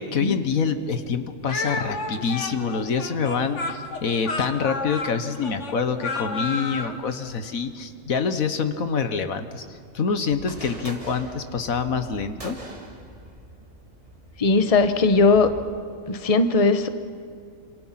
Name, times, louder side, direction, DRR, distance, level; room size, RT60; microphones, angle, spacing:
voice 1, 0.0-9.6 9.9-12.6, left 5 dB, 80° left, 9 dB, 1.7 m, -26 dB
Speech, 1.5-7.0, left 3 dB, 60° left, 2.0 m, -31 dB
sound 1, 10.3-15.6, right 1 dB, 25° right, 2.8 m, -43 dB
voice 2, 14.4-15.5 16.1-16.9, left 3 dB, 30° left, 9 dB, 1.1 m, -18 dB
27.5 x 27.5 x 5.9 m, 2.2 s
omnidirectional pair, 1.4 m